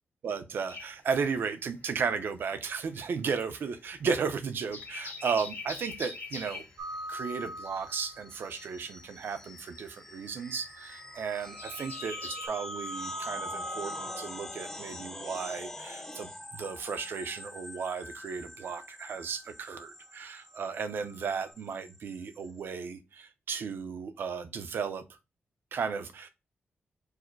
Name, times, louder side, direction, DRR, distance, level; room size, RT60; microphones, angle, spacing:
voice 1, 0.2-6.6 7.1-25.2 25.7-26.3, right 6 dB, 60° right, 0.6 m, -35 dB
sound 1, 0.7-2.1 2.4-12.5, left 4 dB, 70° left, 1.7 m, -44 dB
sound 2, 6.4-22.6, left 1 dB, 10° left, 0.4 m, -46 dB
sound 3, 6.8-8.4 10.4-14.8 20.7-21.5, equal, 80° right, 0.9 m, -42 dB
4.8 x 2.1 x 4.4 m
wide cardioid pair, 160°, 4 cm